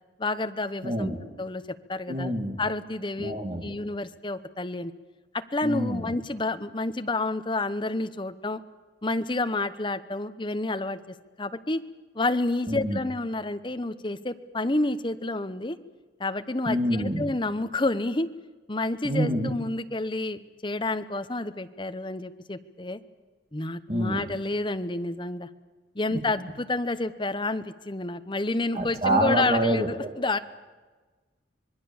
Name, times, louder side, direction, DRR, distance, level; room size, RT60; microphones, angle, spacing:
voice 1, 0.2-1.1 1.4-1.6 1.9-2.3 2.6-4.9 5.3-8.6 9.0-11.0 11.4-11.8 12.1-15.8 16.2-18.3 18.7-23.0 23.5-25.5 25.9-30.4, left 2 dB, 25° left, 10 dB, 1.0 m, -29 dB
voice 2, 0.8-1.2 2.1-2.6 3.2-3.6 5.6-6.0 12.7-13.0 16.6-17.2 19.0-19.5 23.9-24.3 26.1-26.2 28.7-29.9, right 1 dB, 35° right, 4 dB, 2.5 m, -26 dB
26.0 x 21.0 x 7.2 m, 1.3 s
head